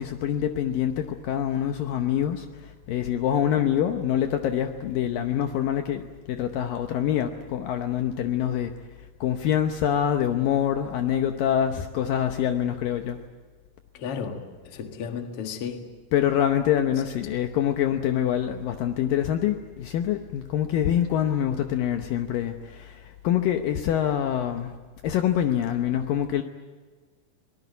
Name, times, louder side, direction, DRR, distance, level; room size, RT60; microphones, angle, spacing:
voice 1, 0.0-8.7 9.2-13.2 16.1-24.7 25.0-26.4, left 10 dB, 90° left, 6 dB, 1.9 m, -25 dB
voice 2, 14.0-14.4 14.7-15.8, left 6 dB, 55° left, 5 dB, 1.6 m, -33 dB
24.0 x 19.5 x 9.3 m, 1.4 s
omnidirectional pair, 5.4 m